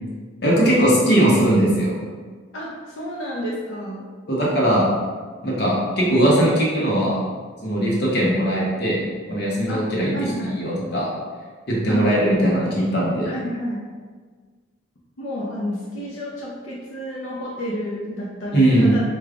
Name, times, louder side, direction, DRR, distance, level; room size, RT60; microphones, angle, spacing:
voice 1, 0.4-2.0 4.3-4.9 5.4-7.2 7.6-9.0 9.3-10.1 10.4-11.1 11.7-13.3 18.5-18.9, right 1 dB, 50° left, -5 dB, 0.8 m, -19 dB
voice 2, 2.5-4.1 9.7-10.7 11.9-12.1 13.3-13.8 15.2-19.0, equal, 80° left, -5 dB, 0.6 m, -30 dB
4.8 x 2.3 x 2.4 m, 1.5 s
head